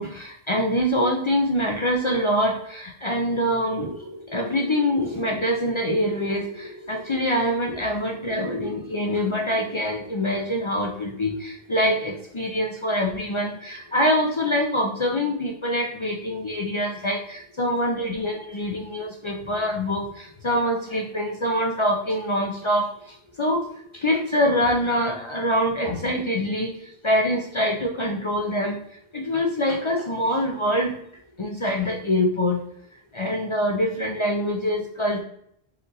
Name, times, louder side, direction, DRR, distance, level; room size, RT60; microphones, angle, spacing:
voice 1, 0.0-30.9 31.4-32.6 33.1-35.2, equal, 40° left, 1 dB, 0.5 m, -25 dB
4.2 x 4.0 x 2.6 m, 0.71 s
omnidirectional pair, 1.1 m